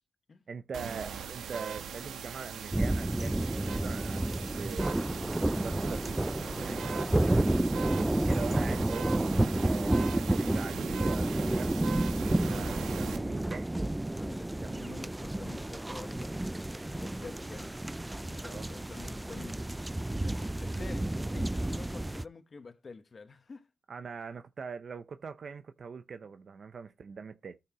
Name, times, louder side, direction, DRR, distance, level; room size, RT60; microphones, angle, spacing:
voice 1, 0.5-5.0 5.5-6.4 6.6-7.5 8.0-11.8 12.4-13.7 14.5-15.1 18.4-18.7 23.9-27.6, right 5 dB, 65° right, 0.7 m, -42 dB
sound 1, 0.7-13.2, right 7 dB, 90° right, 1.1 m, -40 dB
sound 2, 2.7-22.2, right 1 dB, 15° right, 0.4 m, -31 dB
voice 2, 12.4-12.8 14.2-16.5 16.7-17.8 18.2-19.7 20.2-23.7, left 4 dB, 50° left, 1.2 m, -48 dB
13.5 x 5.7 x 3.0 m
cardioid pair, 55°, 0 cm